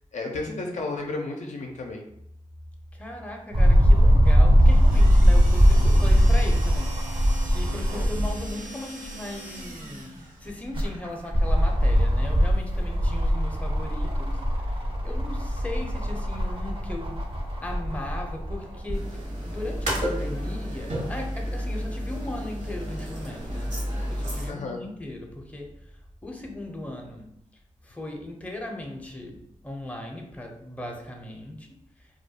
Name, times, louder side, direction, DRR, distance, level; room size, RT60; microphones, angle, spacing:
voice 1, 0.1-2.0 7.9-8.1 24.5-24.8, left 3 dB, 65° left, 1 dB, 0.4 m, -32 dB
voice 2, 2.9-17.2 17.6-23.8 24.1-25.7 26.2-27.3 27.8-31.8, left 1 dB, 10° left, 1 dB, 0.5 m, -38 dB
sound 1, 3.5-8.6 9.0-9.1 10.5-19.0 19.8-19.9, equal, 40° right, 0.6 m, -21 dB
sound 2, 4.6-10.5, right 2 dB, 90° right, 0.4 m, -42 dB
sound 3, 18.9-24.5, equal, 65° right, 0.9 m, -31 dB
2.3 x 2.1 x 2.7 m, 0.77 s
cardioid pair, 45°, 13 cm